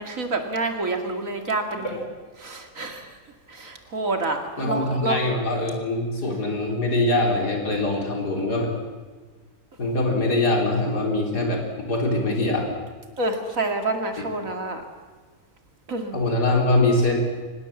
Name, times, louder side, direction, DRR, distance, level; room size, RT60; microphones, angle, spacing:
voice 1, 0.0-2.0 2.4-3.1 3.5-5.2 13.2-14.8 15.9-16.2, right 2 dB, 55° right, 5 dB, 2.8 m, -28 dB
voice 2, 4.6-8.8 9.8-11.6 11.9-12.7 16.1-17.2, left 2 dB, 85° left, 1 dB, 4.5 m, -23 dB
24.5 x 19.5 x 7.3 m, 1.4 s
omnidirectional pair, 1.7 m